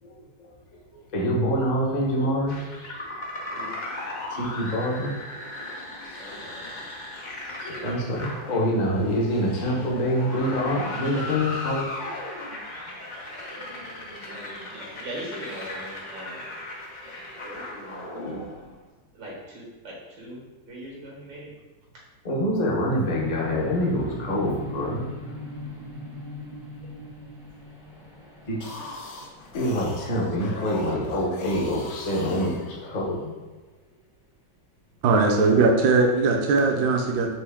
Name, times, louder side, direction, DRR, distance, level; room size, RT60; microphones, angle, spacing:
voice 1, 0.0-0.5 0.9-2.6 4.3-5.1 6.3-6.4 7.6-12.4 17.0-17.3 22.2-25.1 28.5-28.6 29.5-33.4 35.1-35.3, equal, 40° left, -4 dB, 0.6 m, -26 dB
sound 1, 2.5-18.8, left 2 dB, 90° left, 0.4 m, -37 dB
voice 2, 6.2-6.9 14.3-16.5 17.4-18.3 19.1-21.5, right 1 dB, 85° right, -4 dB, 2.1 m, -41 dB
sound 2, 23.0-31.9, left 1 dB, 5° right, 0.6 m, -40 dB
sound 3, 28.5-33.2, left 2 dB, 70° left, 1.2 m, -40 dB
voice 3, 35.0-37.4, right 3 dB, 70° right, 3 dB, 1.1 m, -20 dB
4.5 x 3.0 x 3.5 m, 1.2 s
omnidirectional pair, 2.0 m